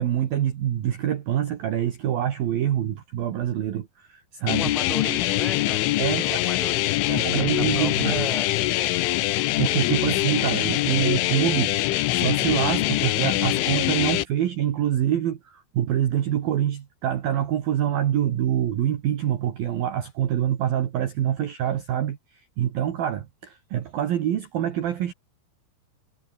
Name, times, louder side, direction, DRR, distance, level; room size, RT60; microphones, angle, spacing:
voice 1, 0.0-4.7 6.0-6.4 7.1-8.3 9.6-25.1, right 11 dB, 60° right, 3.1 m, -26 dB
sound 1, 4.5-14.3, left 17 dB, 85° left, 3.6 m, -23 dB
voice 2, 4.5-9.3, right 1 dB, ahead, 5.1 m, -38 dB
omnidirectional pair, 5.5 m